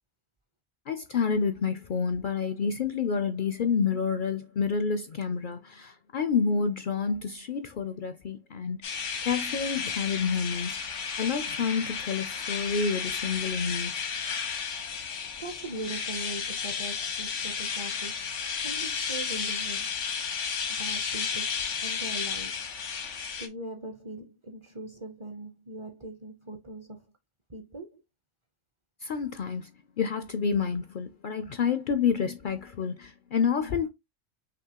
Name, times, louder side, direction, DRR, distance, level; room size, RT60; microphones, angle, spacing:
voice 1, 0.9-8.8 9.3-10.8 11.2-14.0 29.0-29.7 30.0-33.9, left 6 dB, 60° left, 0.6 m, -29 dB
sound 1, 8.8-23.5, left 6 dB, 85° left, 1.3 m, -33 dB
voice 2, 15.4-18.3 18.6-19.9 20.8-22.6 23.4-27.0 27.5-28.0, right 1 dB, 30° right, 0.6 m, -40 dB
6.0 x 2.7 x 2.8 m
omnidirectional pair, 1.2 m